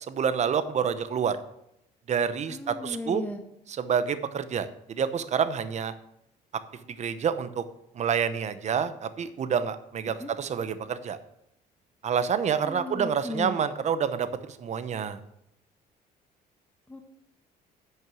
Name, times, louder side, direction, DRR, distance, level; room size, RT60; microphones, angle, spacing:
voice 1, 0.1-1.4 2.1-3.2 3.7-5.9 7.0-7.6 7.9-11.2 12.0-15.2, right 7 dB, 45° right, 12 dB, 0.9 m, -28 dB
voice 2, 2.5-3.4 10.2-10.3 12.6-13.6 16.9-17.0, left 2 dB, 10° left, 3 dB, 1.2 m, -36 dB
10.5 x 6.3 x 6.3 m, 0.79 s
cardioid pair, 110°, 17 cm